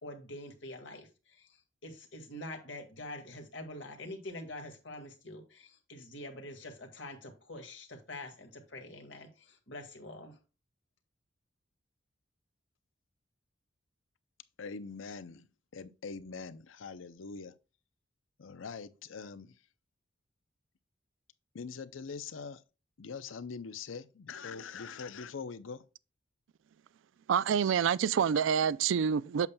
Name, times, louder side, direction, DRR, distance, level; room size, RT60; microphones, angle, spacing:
voice 1, 0.0-10.4, left 1 dB, 65° left, 1.7 m, -45 dB
voice 2, 14.6-15.5 15.7-17.5 18.4-19.5 21.5-22.6 23.0-25.8, left 5 dB, 90° left, 0.6 m, -43 dB
voice 3, 27.3-29.5, right 7 dB, 80° right, 0.4 m, -27 dB
8.2 x 6.9 x 2.2 m
head